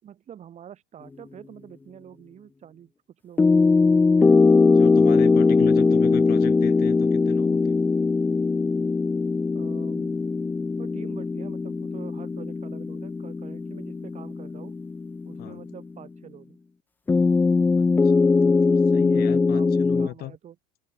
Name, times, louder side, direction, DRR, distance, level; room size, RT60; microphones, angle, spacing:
voice 1, 0.0-2.9 3.2-3.7 5.5-5.8 9.5-10.1 10.8-14.8 15.2-16.6 19.0-20.6, right 9 dB, 35° right, 5.9 m, -46 dB
sound 1, 3.4-15.8 17.1-20.1, left 4 dB, 10° left, 0.3 m, -21 dB
voice 2, 4.7-7.8 15.4-15.6 17.7-20.4, left 17 dB, 50° left, 2.1 m, -38 dB
open air
supercardioid pair, 125°, 21 cm